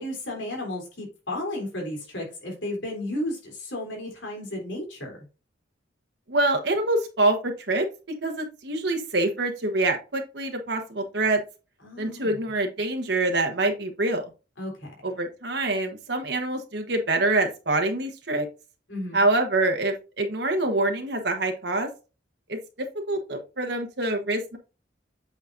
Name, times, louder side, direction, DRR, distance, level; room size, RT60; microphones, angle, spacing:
voice 1, 0.0-5.2 11.8-12.4 14.6-14.9 18.9-19.2, left 1 dB, 75° left, 1 dB, 3.3 m, -33 dB
voice 2, 6.3-11.4 12.0-14.2 15.0-18.5 19.1-21.9 22.5-22.6 23.1-24.6, right 2 dB, 60° right, 5 dB, 1.2 m, -25 dB
8.3 x 5.9 x 2.6 m, 0.31 s
head